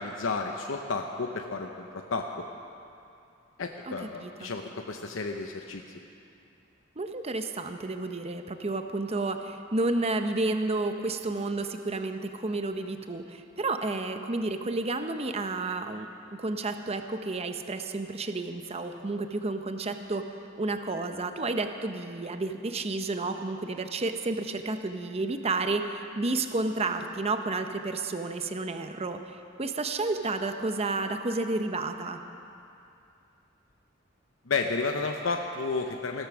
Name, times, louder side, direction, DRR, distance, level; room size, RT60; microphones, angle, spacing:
voice 1, 0.0-2.3 3.6-5.8 34.5-36.3, left 4 dB, 85° left, 3 dB, 0.8 m, -32 dB
voice 2, 4.2-4.5 7.0-16.1 16.4-20.2 20.6-32.2, right 2 dB, 30° right, 7 dB, 0.7 m, -31 dB
16.0 x 13.5 x 6.1 m, 2.6 s
head